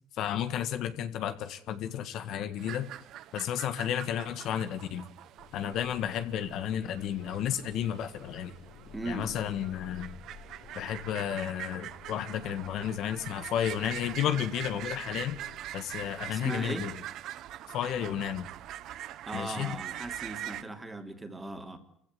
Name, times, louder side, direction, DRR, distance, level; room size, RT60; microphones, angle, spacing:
voice 1, 0.2-2.9 3.3-5.0 5.5-8.5 9.0-10.2 10.7-15.4 15.7-16.9 17.7-18.5 19.3-19.8, left 10 dB, 60° left, 10 dB, 1.7 m, -32 dB
sound 1, 2.6-20.6, right 12 dB, 60° right, 1.0 m, -43 dB
sound 2, 5.4-15.6, left 6 dB, 80° left, 6.9 m, -53 dB
voice 2, 8.9-9.3 16.3-16.9 19.3-21.8, right 2 dB, 15° right, 6 dB, 2.9 m, -38 dB
26.0 x 16.0 x 9.5 m, 0.70 s
cardioid pair, 120°, 0 cm